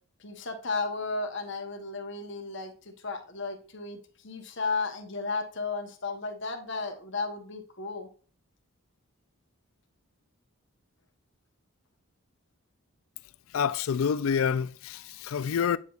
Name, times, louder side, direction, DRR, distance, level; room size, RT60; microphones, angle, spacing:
voice 1, 0.2-8.1, left 3 dB, 55° left, 1.0 m, -34 dB
voice 2, 13.5-15.8, left 7 dB, 70° left, 0.4 m, -27 dB
9.1 x 5.6 x 2.4 m
head